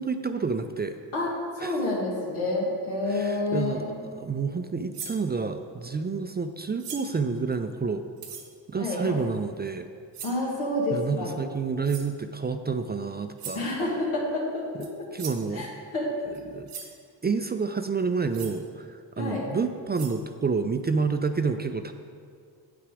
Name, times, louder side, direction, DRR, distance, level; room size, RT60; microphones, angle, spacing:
voice 1, 0.0-1.0 1.6-1.8 3.1-3.8 4.1-8.0 8.7-9.9 10.9-13.7 14.8-15.7 16.5-16.7 17.2-21.9, right 4 dB, 25° right, 8 dB, 0.4 m, -29 dB
voice 2, 1.1-4.0 8.8-9.2 10.2-11.3 13.6-15.1 15.5-15.7 15.9-16.1 19.2-19.5, left 2 dB, 90° left, -4 dB, 1.9 m, -29 dB
sound 1, 4.9-5.2 6.8-7.2 8.2-8.5 10.1-10.5 11.8-12.1 13.4-13.7 14.8-14.9 15.2-15.5 16.3-16.4 16.7-16.9 18.3-18.6 19.5-19.6 19.9-20.2, right 6 dB, 85° right, 1.0 m, -40 dB
7.9 x 5.9 x 4.9 m, 2.2 s
supercardioid pair, 50°, 48 cm